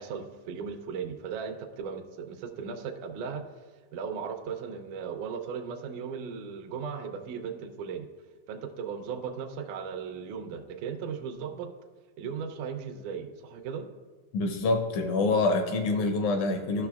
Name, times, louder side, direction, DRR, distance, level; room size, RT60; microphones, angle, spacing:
voice 1, 0.0-3.5 3.9-8.1 8.5-11.7 12.2-13.9, right 6 dB, 80° right, 5 dB, 2.0 m, -37 dB
voice 2, 14.3-16.9, left 3 dB, 80° left, 5 dB, 1.8 m, -26 dB
13.5 x 6.4 x 2.3 m, 1.4 s
omnidirectional pair, 3.7 m